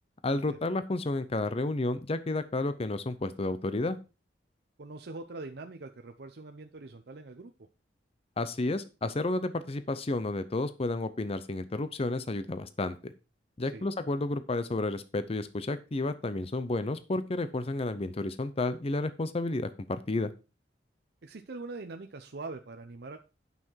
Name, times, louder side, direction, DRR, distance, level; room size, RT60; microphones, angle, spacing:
voice 1, 0.2-4.0 8.4-13.0 13.6-20.3, left 2 dB, 35° left, 12 dB, 0.6 m, -31 dB
voice 2, 4.8-7.7 13.6-13.9 21.2-23.2, right 3 dB, 65° right, 5 dB, 0.7 m, -43 dB
9.1 x 5.8 x 4.5 m, 0.31 s
head